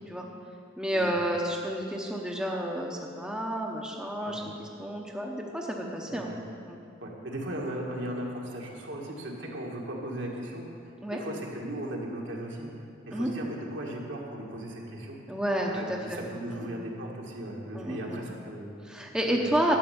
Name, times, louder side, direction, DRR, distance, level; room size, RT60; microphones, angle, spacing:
voice 1, 0.8-6.3 6.7-6.8 11.0-11.2 13.1-13.3 15.3-16.2 16.5-16.8 17.7-18.3 18.8-19.8, right 1 dB, 5° right, -1 dB, 0.8 m, -30 dB
voice 2, 7.0-15.2 15.7-18.7 19.4-19.8, right 1 dB, 70° right, -1 dB, 1.9 m, -37 dB
11.0 x 6.7 x 8.7 m, 2.4 s
head